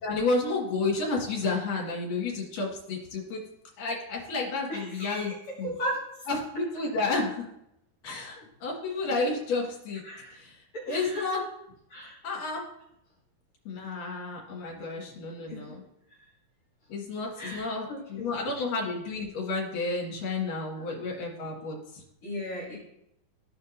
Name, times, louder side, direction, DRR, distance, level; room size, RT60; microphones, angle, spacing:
voice 1, 0.0-3.4 3.8-5.3 5.6-5.7 6.3-7.5 8.0-10.0 10.3-11.4 12.2-12.6 13.6-15.8 16.9-22.0, left 3 dB, 60° left, -3 dB, 3.3 m, -31 dB
voice 2, 4.7-6.0 10.0-10.4 10.7-11.2 11.9-12.2 15.5-15.6 17.4-18.5 20.7-20.9 22.2-22.8, equal, 45° left, -7 dB, 3.4 m, -36 dB
15.0 x 5.2 x 2.7 m, 0.80 s
omnidirectional pair, 4.6 m